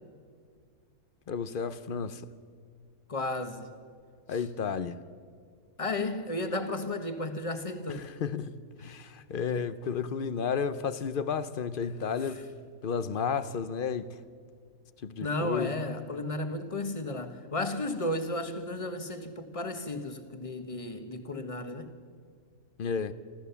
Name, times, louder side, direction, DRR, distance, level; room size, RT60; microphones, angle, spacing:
voice 1, 1.3-2.2 4.3-5.0 7.9-12.4 12.8-14.2 15.0-15.8 22.8-23.1, left 6 dB, 50° left, 0.7 m, -32 dB
voice 2, 3.1-3.7 4.3-4.4 5.8-8.1 12.2-12.3 15.2-21.9, left 2 dB, 25° left, 1.2 m, -33 dB
28.5 x 13.5 x 7.0 m
omnidirectional pair, 1.6 m